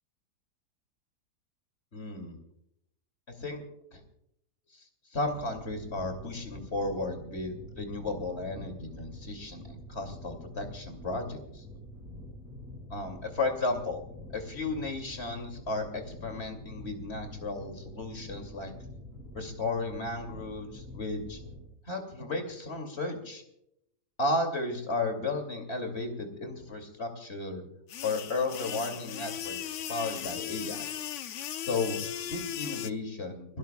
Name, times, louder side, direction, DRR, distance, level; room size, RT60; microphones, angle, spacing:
voice 1, 1.9-2.4 3.3-3.6 3.9-4.0 4.7-4.8 5.1-11.6 12.9-14.0 14.3-18.7 19.3-21.4 21.9-23.4 24.2-27.6 28.0-30.9 31.6-33.6, left 2 dB, 40° left, 5 dB, 2.9 m, -34 dB
sound 1, 5.3-21.7, left 1 dB, 10° right, 6.5 m, -46 dB
sound 2, 27.9-32.9, left 10 dB, 60° left, 0.8 m, -37 dB
29.5 x 13.0 x 2.3 m, 0.77 s
omnidirectional pair, 1.8 m